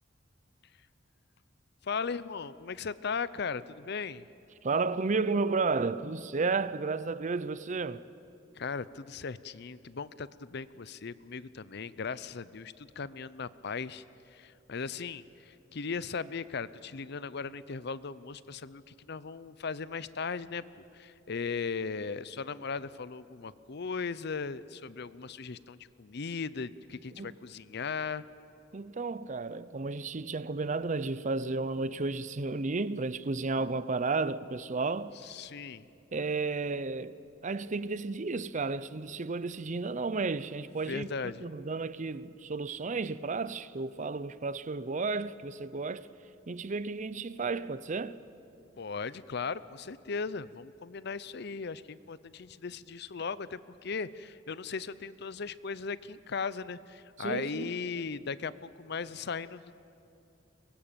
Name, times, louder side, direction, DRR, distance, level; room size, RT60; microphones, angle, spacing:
voice 1, 1.8-4.3 8.6-28.2 35.2-35.9 40.9-41.4 48.8-59.7, left 5 dB, 60° left, 0.7 m, -37 dB
voice 2, 4.6-8.1 27.2-27.3 28.7-35.1 36.1-41.1 41.4-46.1 46.5-48.2 57.2-57.7, right 3 dB, 40° right, 0.6 m, -32 dB
23.5 x 21.0 x 9.0 m
head